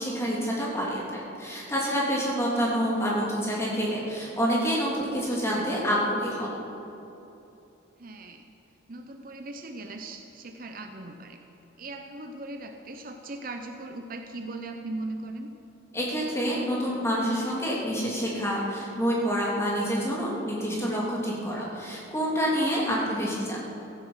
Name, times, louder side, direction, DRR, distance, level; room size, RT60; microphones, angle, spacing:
voice 1, 0.0-6.5 15.9-23.6, equal, 15° left, -4 dB, 3.1 m, -27 dB
voice 2, 8.0-8.5 8.9-11.4 11.8-15.5, right 2 dB, 45° right, 5 dB, 0.9 m, -39 dB
16.5 x 14.0 x 5.7 m, 3.0 s
head